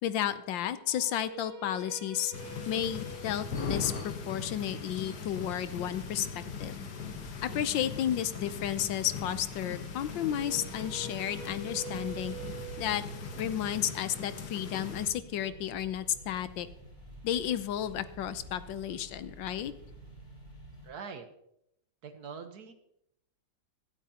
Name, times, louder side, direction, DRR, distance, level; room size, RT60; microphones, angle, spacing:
voice 1, 0.0-2.3 2.7-6.8 7.4-12.3 12.8-13.0 13.4-16.7 17.2-19.7, left 10 dB, 80° left, 13 dB, 1.4 m, -32 dB
sound 1, 0.7-6.8 10.1-16.1, right 4 dB, 35° right, 2.2 m, -48 dB
sound 2, 2.3-15.1, left 5 dB, 60° left, 1.7 m, -40 dB
sound 3, 2.9-20.9, right 2 dB, 15° left, 3.7 m, -51 dB
voice 2, 20.8-21.3 22.0-22.7, right 5 dB, 60° right, 7 dB, 1.5 m, -43 dB
25.0 x 8.3 x 2.9 m, 0.78 s
omnidirectional pair, 2.0 m